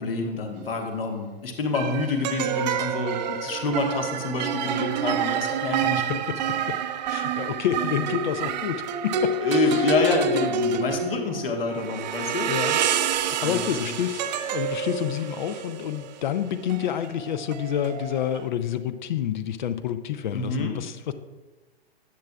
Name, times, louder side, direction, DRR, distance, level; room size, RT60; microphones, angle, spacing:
voice 1, 0.0-6.2 7.3-7.4 9.4-12.5 13.4-13.9 20.3-20.7, left 3 dB, 60° left, 3 dB, 1.5 m, -28 dB
sound 1, 0.6-0.8 1.7-18.5, right 6 dB, 45° right, 0.6 m, -28 dB
voice 2, 7.1-9.9 12.5-12.8 13.1-14.2 14.5-21.1, left 10 dB, 45° left, 12 dB, 0.5 m, -28 dB
10.5 x 8.2 x 2.3 m, 1.3 s
figure-of-eight pair, 105°, 32 cm